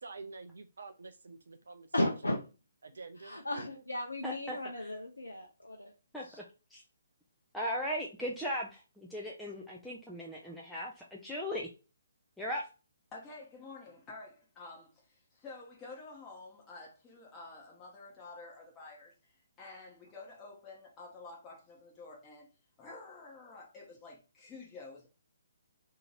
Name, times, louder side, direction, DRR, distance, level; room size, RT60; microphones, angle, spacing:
voice 1, 0.0-2.1 2.8-3.4 3.7-3.8, right 4 dB, 65° right, 0.4 m, -48 dB
voice 2, 1.9-2.4 3.2-5.9 6.2-6.4, left 1 dB, 85° left, 0.6 m, -35 dB
voice 3, 4.2-4.9 6.1-6.2 6.7-6.8 7.5-11.7 12.4-12.6, equal, ahead, 0.5 m, -38 dB
voice 4, 13.1-22.5 22.8-25.1, left 3 dB, 15° left, 0.9 m, -50 dB
2.8 x 2.7 x 4.3 m
figure-of-eight pair, 135°, 0 cm